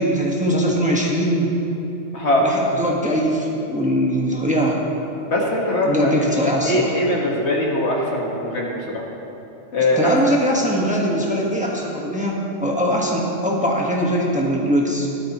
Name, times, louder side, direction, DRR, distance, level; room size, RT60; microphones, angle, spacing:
voice 1, 0.0-1.5 2.4-4.8 5.8-6.9 9.9-15.1, equal, 5° right, -3 dB, 1.4 m, -21 dB
voice 2, 2.1-2.5 5.3-6.1 6.6-9.0 9.7-10.2, left 1 dB, 65° left, -2 dB, 1.9 m, -21 dB
17.0 x 13.0 x 3.0 m, 2.9 s
omnidirectional pair, 1.2 m